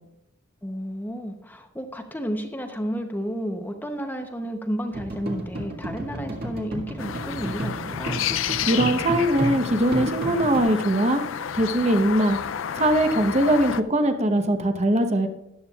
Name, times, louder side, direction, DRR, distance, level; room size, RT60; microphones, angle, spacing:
voice 1, 0.6-8.2, equal, 10° left, 4 dB, 0.8 m, -32 dB
sound 1, 4.9-10.6, right 1 dB, 50° right, 1.9 m, -32 dB
sound 2, 7.0-13.8, left 9 dB, 70° left, 0.4 m, -31 dB
voice 2, 8.7-11.2 11.5-12.4 12.8-15.3, right 1 dB, 35° right, 7 dB, 0.9 m, -21 dB
13.5 x 10.5 x 2.4 m, 0.87 s
head